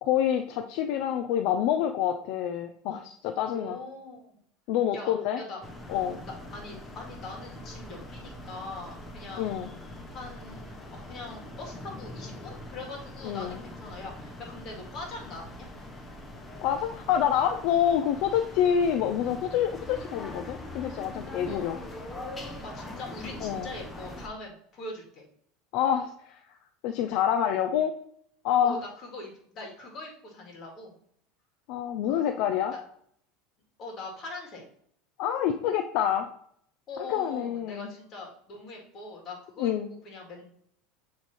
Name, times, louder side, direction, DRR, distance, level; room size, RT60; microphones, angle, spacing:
voice 1, 0.0-3.8 4.7-5.4 5.9-6.2 9.4-9.7 13.2-13.6 16.6-21.8 23.4-23.7 25.7-26.4 26.8-27.9 28.4-28.8 31.7-32.7 35.2-36.3 37.1-37.9 39.6-39.9, left 9 dB, 60° left, 7 dB, 0.4 m, -27 dB
voice 2, 3.5-4.4 4.9-5.6 6.2-9.5 10.1-15.7 21.4-21.7 22.6-25.2 28.6-30.9 32.7-32.8 33.8-34.6 36.9-39.7 40.0-40.4, left 2 dB, 35° left, 0 dB, 2.0 m, -42 dB
sound 1, 5.6-24.3, left 1 dB, 15° left, 0.7 m, -42 dB
7.1 x 3.2 x 4.1 m, 0.66 s
supercardioid pair, 135°, 0 cm